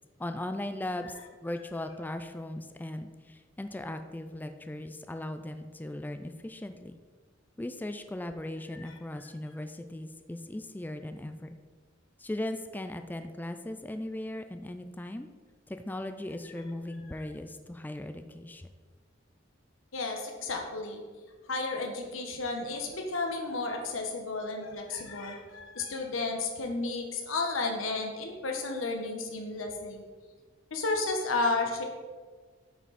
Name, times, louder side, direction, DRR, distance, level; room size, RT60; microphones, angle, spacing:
voice 1, 0.2-7.0 7.6-11.6 12.2-15.3 15.7-18.7, left 1 dB, 10° left, 8 dB, 0.3 m, -38 dB
voice 2, 19.9-21.0 21.5-30.0 30.7-31.8, left 3 dB, 90° left, 3 dB, 1.2 m, -32 dB
8.7 x 5.8 x 4.1 m, 1.5 s
head